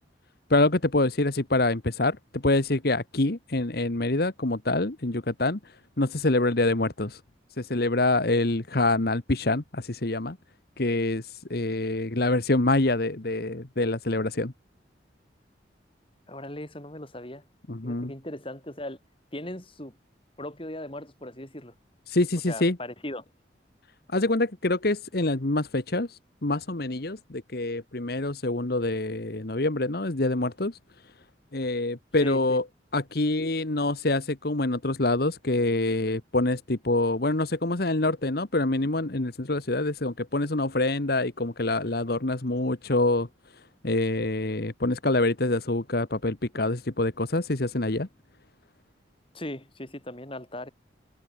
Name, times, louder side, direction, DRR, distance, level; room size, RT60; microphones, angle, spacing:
voice 1, 0.5-7.2 7.6-10.4 10.8-14.5 17.7-18.1 22.1-22.8 24.1-30.8 31.5-32.6 32.9-43.3 43.8-48.1, left 2 dB, 55° left, 1.4 m, -26 dB
voice 2, 16.3-17.4 17.8-19.0 19.3-20.0 20.4-21.7 22.5-23.2 32.2-32.6 49.3-50.7, left 1 dB, 30° left, 5.8 m, -38 dB
head